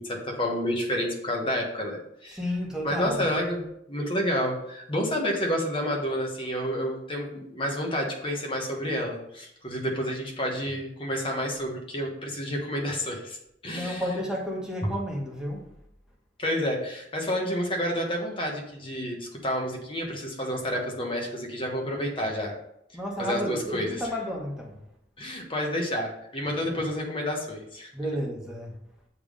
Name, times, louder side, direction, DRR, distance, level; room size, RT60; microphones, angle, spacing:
voice 1, 0.0-2.4 2.8-3.6 3.9-13.4 13.6-14.0 14.8-14.9 16.4-22.5 23.2-24.0 25.2-27.9, equal, 30° left, 1 dB, 1.2 m, -29 dB
voice 2, 2.3-3.3 13.6-15.6 22.9-24.8 26.8-26.9 27.9-28.7, equal, 5° right, -3 dB, 1.3 m, -32 dB
7.1 x 3.5 x 5.0 m, 0.78 s
head